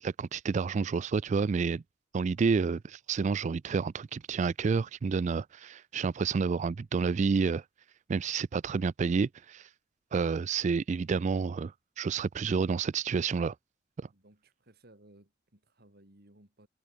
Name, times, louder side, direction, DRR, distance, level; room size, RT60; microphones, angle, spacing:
voice 1, 0.0-1.8 2.1-7.6 8.1-9.7 10.1-13.5, right 5 dB, 40° right, 0.3 m, -29 dB
voice 2, 14.1-16.7, right 1 dB, 55° right, 3.8 m, -59 dB
head